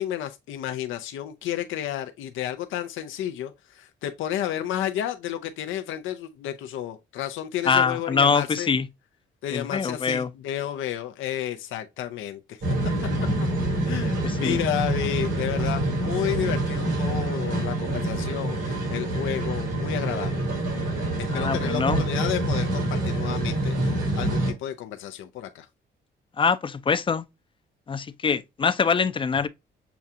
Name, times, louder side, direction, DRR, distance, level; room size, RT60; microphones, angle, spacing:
voice 1, 0.0-8.7 9.4-12.7 13.9-20.4 21.2-25.7, left 11 dB, 80° left, 0.6 m, -31 dB
voice 2, 7.7-8.9 9.5-10.3 14.2-14.6 21.3-22.0 26.4-27.2 27.9-29.5, left 5 dB, 25° left, 0.5 m, -24 dB
sound 1, 12.6-24.5, right 1 dB, 75° right, 2.7 m, -26 dB
6.9 x 2.4 x 2.6 m
cardioid pair, 90°, 20 cm